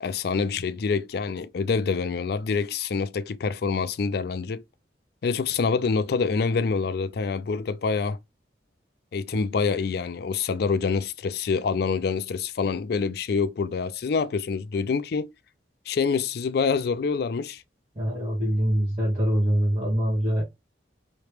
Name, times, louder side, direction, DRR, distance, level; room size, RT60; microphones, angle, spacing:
voice 1, 0.0-4.6 5.2-8.2 9.1-15.3 15.9-17.6, left 5 dB, 60° left, 0.4 m, -26 dB
voice 2, 17.9-20.4, equal, 40° right, 1.3 m, -24 dB
3.1 x 2.8 x 3.1 m
head